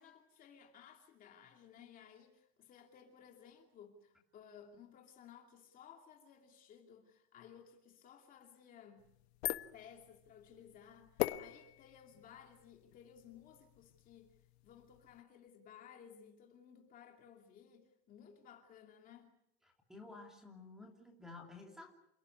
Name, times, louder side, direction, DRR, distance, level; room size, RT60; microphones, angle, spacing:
voice 1, 0.0-9.1 9.7-14.4 14.6-19.4, left 8 dB, 25° left, 3 dB, 2.6 m, -58 dB
sound 1, 9.0-15.2, left 16 dB, 70° left, 1.3 m, -44 dB
voice 2, 19.9-21.9, left 3 dB, ahead, 2 dB, 2.9 m, -52 dB
28.5 x 18.0 x 9.6 m, 0.80 s
supercardioid pair, 180°, 34 cm